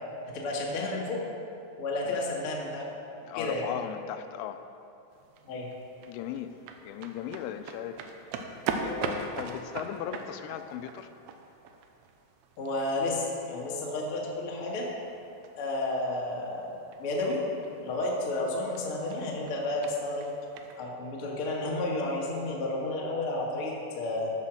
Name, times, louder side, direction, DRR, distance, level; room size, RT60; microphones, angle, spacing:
voice 1, 0.3-1.2 1.8-2.8 3.3-3.7 5.5-5.7 12.6-14.9 15.5-16.6 17.0-17.4 17.8-20.3 20.7-24.3, left 2 dB, 65° left, -3 dB, 1.3 m, -31 dB
voice 2, 3.3-4.6 6.1-6.6 6.8-8.0 8.5-11.1, left 10 dB, 90° left, 9 dB, 3.1 m, -37 dB
sound 1, 5.1-20.8, right 5 dB, 85° right, 2.5 m, -42 dB
14.0 x 6.0 x 6.3 m, 2.7 s
omnidirectional pair, 5.4 m